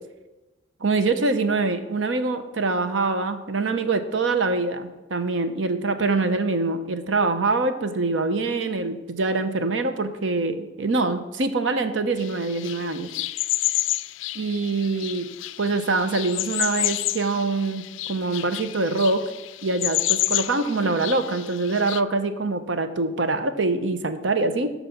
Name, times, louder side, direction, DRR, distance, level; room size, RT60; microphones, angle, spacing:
voice 1, 0.8-13.1 14.4-15.3 15.6-19.2 19.6-24.7, right 3 dB, 80° right, 9 dB, 0.8 m, -24 dB
sound 1, 12.2-22.0, left 16 dB, 85° left, 0.3 m, -30 dB
11.5 x 4.1 x 7.1 m, 1.1 s
head